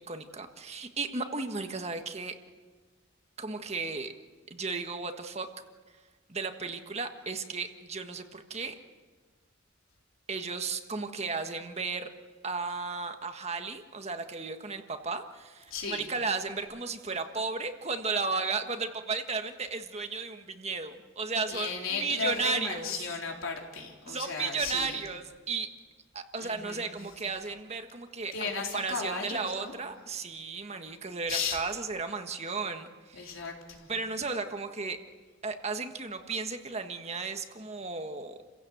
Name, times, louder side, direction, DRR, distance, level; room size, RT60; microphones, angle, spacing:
voice 1, 0.1-2.3 3.4-4.1 4.5-5.5 6.3-8.7 10.3-12.1 12.4-23.1 24.1-25.7 26.1-33.3 33.9-35.0 35.4-38.4, right 4 dB, 30° right, 6 dB, 1.5 m, -34 dB
voice 2, 15.7-16.1 21.5-25.0 26.4-26.9 28.3-29.8 31.3-31.6 33.1-33.9, left 5 dB, 85° left, 0 dB, 4.0 m, -35 dB
29.5 x 16.5 x 8.0 m, 1.4 s
head